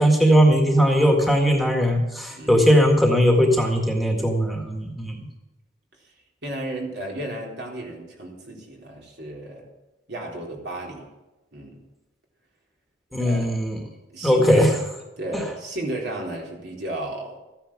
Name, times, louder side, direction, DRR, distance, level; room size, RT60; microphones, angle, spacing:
voice 1, 0.0-5.2 13.1-13.8 14.2-14.7 15.3-15.4, equal, ahead, 1 dB, 1.8 m, -19 dB
voice 2, 2.3-2.7 6.4-9.6 10.1-11.1 11.5-11.8 13.2-13.6 14.1-14.8 15.2-17.4, right 1 dB, 60° right, -1 dB, 3.8 m, -33 dB
14.5 x 10.0 x 7.3 m, 1.0 s
head